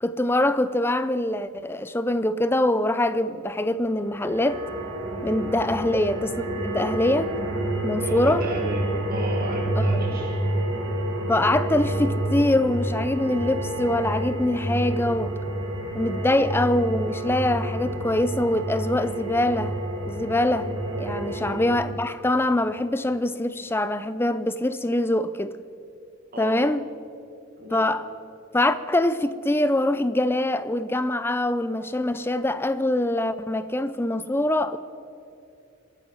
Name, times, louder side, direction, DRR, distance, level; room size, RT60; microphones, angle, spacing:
voice 1, 0.0-4.6 5.2-7.3 7.8-8.4 9.8-10.0 11.3-15.3 15.9-19.7 20.0-20.7 21.0-25.6 26.4-26.8 27.7-28.1 28.5-34.8, left 1 dB, 10° left, 0.4 m, -24 dB
sound 1, 3.9-21.7, right 1 dB, 65° right, 2.9 m, -29 dB
voice 2, 8.0-10.4 21.3-21.7 26.3-26.7 27.6-27.9, right 1 dB, 45° right, 1.8 m, -34 dB
26.0 x 9.1 x 5.7 m
head